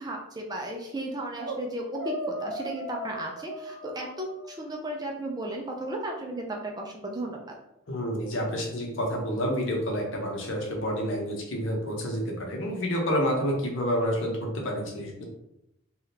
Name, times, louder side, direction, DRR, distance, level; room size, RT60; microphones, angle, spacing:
voice 1, 0.0-7.5, right 1 dB, 20° right, 0 dB, 0.4 m, -35 dB
sound 1, 1.4-1.6 1.9-4.7, equal, 75° right, 0.5 m, -37 dB
voice 2, 7.9-15.2, equal, 75° left, 0 dB, 0.8 m, -29 dB
3.4 x 2.3 x 2.8 m, 0.83 s
head